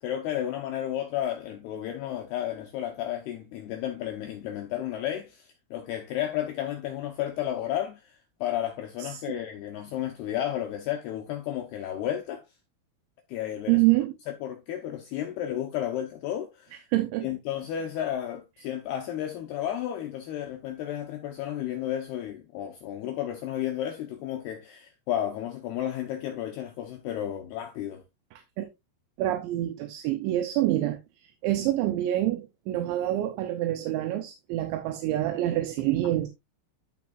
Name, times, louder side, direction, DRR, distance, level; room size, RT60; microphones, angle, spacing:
voice 1, 0.0-12.4 13.3-13.8 14.3-16.9 17.2-28.0, left 11 dB, 90° left, 2.2 m, -32 dB
voice 2, 13.7-14.1 16.9-17.3 28.6-28.7 29.2-31.0 31.4-36.3, right 15 dB, 80° right, 2.8 m, -26 dB
14.5 x 5.1 x 2.5 m
omnidirectional pair, 5.9 m